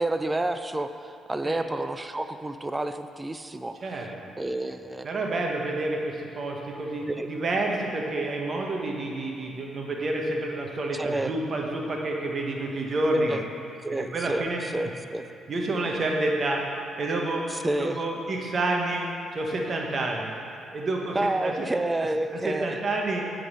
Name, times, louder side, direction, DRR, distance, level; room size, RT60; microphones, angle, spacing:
voice 1, 0.0-3.8 4.4-5.1 7.1-7.3 11.0-11.3 13.1-13.4 13.8-15.2 17.5-18.0 21.1-22.8, right 2 dB, 15° right, 9 dB, 0.4 m, -29 dB
voice 2, 3.8-4.3 5.0-13.4 13.9-14.6 15.5-16.6 17.0-20.4 20.7-21.7 22.0-23.3, right 2 dB, 45° right, 0 dB, 1.2 m, -29 dB
8.4 x 3.9 x 6.2 m, 2.8 s
cardioid pair, 90°, 0 cm